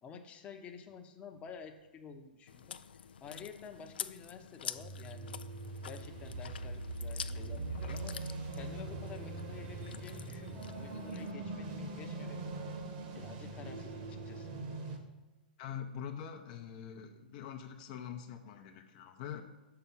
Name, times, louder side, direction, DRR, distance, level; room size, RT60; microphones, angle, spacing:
voice 1, 0.0-2.8 3.2-5.4 5.8-12.7 13.1-14.5, left 6 dB, 25° left, 4 dB, 0.9 m, -50 dB
Chewing mastication, 2.5-11.3, left 8 dB, 80° left, 0.4 m, -47 dB
sound 1, 4.8-15.0, right 2 dB, 50° right, 1.3 m, -42 dB
voice 2, 15.6-19.4, left 8 dB, 50° left, 5 dB, 0.7 m, -44 dB
7.0 x 5.7 x 5.6 m, 1.1 s
hypercardioid pair, 120°, 5 cm